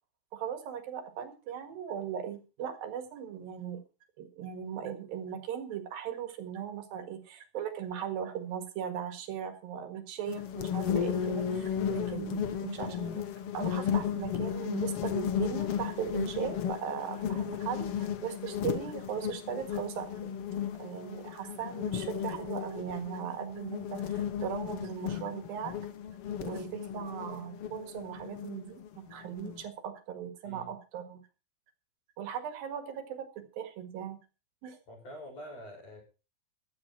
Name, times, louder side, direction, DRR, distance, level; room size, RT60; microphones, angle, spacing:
voice 1, 0.3-3.8 4.2-13.2 13.5-20.4 20.7-25.8 26.4-31.2 32.2-34.2 34.6-34.8, right 9 dB, 70° right, 8 dB, 3.5 m, -38 dB
sound 1, 10.3-29.6, left 8 dB, 80° left, 1.3 m, -34 dB
voice 2, 34.9-36.0, equal, 40° left, 0 dB, 7.4 m, -46 dB
14.5 x 10.5 x 4.5 m, 0.33 s
omnidirectional pair, 4.4 m